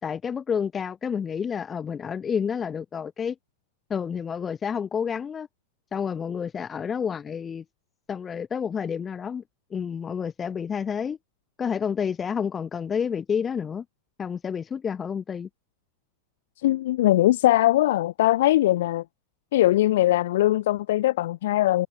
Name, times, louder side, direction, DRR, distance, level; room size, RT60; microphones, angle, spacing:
voice 1, 0.0-3.3 3.9-5.5 5.9-7.6 8.1-9.4 9.7-11.2 11.6-13.8 14.2-15.5, left 7 dB, 20° left, 4.6 m, -29 dB
voice 2, 16.6-19.0 19.5-21.9, left 15 dB, 55° left, 2.5 m, -21 dB
figure-of-eight pair, 90°, 0 cm